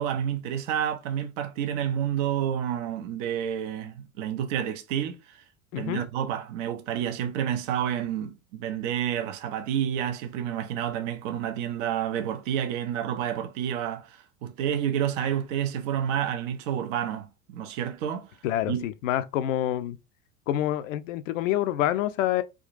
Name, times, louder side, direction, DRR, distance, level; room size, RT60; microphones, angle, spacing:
voice 1, 0.0-5.4 5.7-18.4 18.7-18.8, right 9 dB, 55° right, 0.7 m, -29 dB
voice 2, 18.4-20.0 20.5-22.4, left 12 dB, 60° left, 0.5 m, -27 dB
3.6 x 2.4 x 2.5 m
figure-of-eight pair, 85°, 45 cm